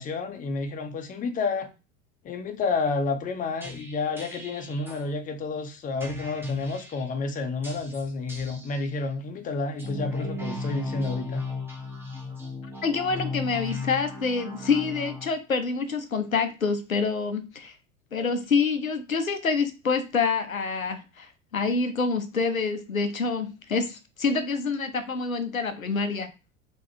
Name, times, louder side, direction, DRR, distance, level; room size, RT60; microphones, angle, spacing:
voice 1, 0.0-1.7 2.2-11.4, left 3 dB, 20° left, 0.6 m, -30 dB
Auna + vocodex, 3.6-5.0 6.0-7.1 7.6-8.8 9.7-15.3, left 3 dB, 5° right, 1.0 m, -36 dB
voice 2, 12.8-17.7 18.1-26.3, left 4 dB, 90° left, 0.5 m, -27 dB
3.5 x 3.1 x 2.7 m
figure-of-eight pair, 75°, 40 cm